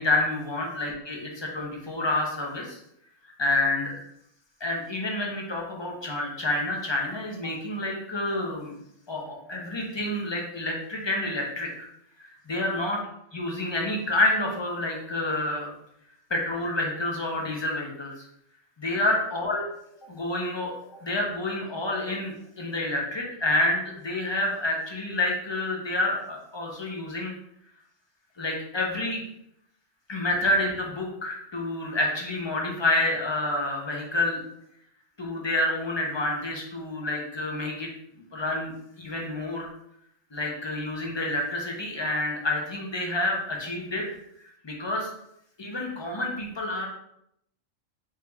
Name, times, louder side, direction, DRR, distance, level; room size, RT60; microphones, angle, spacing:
voice 1, 0.0-2.8 3.4-3.9 4.6-8.8 9.1-11.7 12.2-13.0 13.3-15.7 16.3-18.3 18.8-19.6 20.0-20.7 21.0-27.3 28.4-29.2 30.1-34.4 35.2-37.9 38.3-39.7 40.3-44.2 44.6-45.1 45.6-46.9, left 2 dB, 25° left, -1 dB, 0.6 m, -28 dB
3.9 x 3.3 x 3.4 m, 0.75 s
omnidirectional pair, 1.3 m